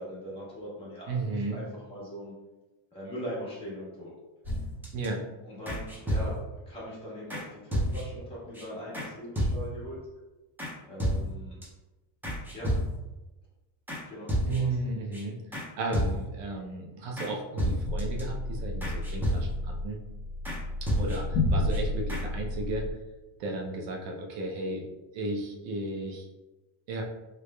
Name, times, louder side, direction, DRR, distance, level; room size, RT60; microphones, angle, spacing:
voice 1, 0.0-2.3 2.9-4.1 5.4-6.4 6.6-10.0 10.8-11.6 12.5-12.7 14.1-14.9, equal, 10° left, -9 dB, 1.4 m, -41 dB
voice 2, 1.1-1.6 4.9-5.2 14.5-15.4 15.8-20.0 21.0-22.9 23.4-24.8 25.1-26.3 26.9-27.0, right 2 dB, 70° right, 0 dB, 0.7 m, -34 dB
sound 1, 4.4-5.1 5.7-6.6 7.3-7.4 7.7-8.2 8.5-8.6 8.9-9.1 9.4-9.9 10.6-10.7 11.0-11.7 12.2-13.2 13.9-14.0 14.3-14.8 15.1-15.2 15.5-15.7 15.9-16.5 17.2-17.3 17.6-18.2 18.8-19.8 20.5-20.6 20.9-21.4 21.7-21.8 22.1-22.2, equal, 5° right, 0.3 m, -31 dB
sound 2, 17.8-22.9, left 2 dB, 55° left, 0.6 m, -31 dB
3.6 x 3.3 x 2.2 m, 1.1 s
cardioid pair, 165°, 46 cm